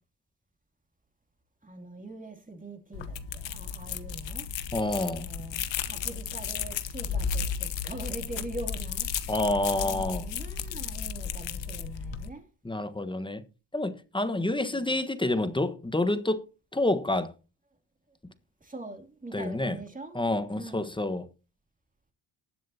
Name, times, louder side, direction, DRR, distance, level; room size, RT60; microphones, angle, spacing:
voice 1, 1.6-4.5 5.0-9.3 9.7-12.4 14.2-15.0 18.6-20.2 20.5-21.0, right 2 dB, 15° right, 2.8 m, -43 dB
sound 1, 2.9-12.3, left 7 dB, 65° left, 1.2 m, -34 dB
voice 2, 4.7-5.3 9.3-10.3 12.6-13.4 13.7-16.4 16.7-17.3 19.3-19.8 20.1-21.3, left 2 dB, 10° left, 1.3 m, -28 dB
20.0 x 7.5 x 2.8 m
supercardioid pair, 65°, 47 cm